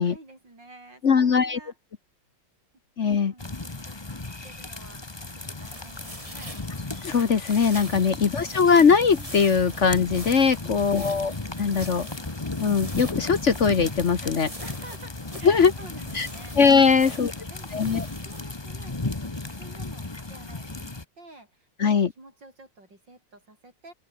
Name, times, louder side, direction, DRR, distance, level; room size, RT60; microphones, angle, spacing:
voice 1, 0.0-1.8 3.0-6.6 8.0-8.7 10.6-11.2 14.6-16.6 16.9-17.9 18.2-23.9, right 2 dB, 85° right, 8.9 m, -49 dB
voice 2, 1.0-1.6 3.0-3.3 7.0-11.3 11.6-12.1 12.6-14.5 15.4-15.7 16.1-16.3 16.6-17.3 17.7-18.1 21.8-22.1, left 5 dB, 45° left, 1.3 m, -20 dB
sound 1, 3.4-21.0, left 2 dB, 15° left, 1.3 m, -35 dB
sound 2, 5.4-18.4, right 1 dB, 20° right, 6.8 m, -44 dB
open air
omnidirectional pair, 1.9 m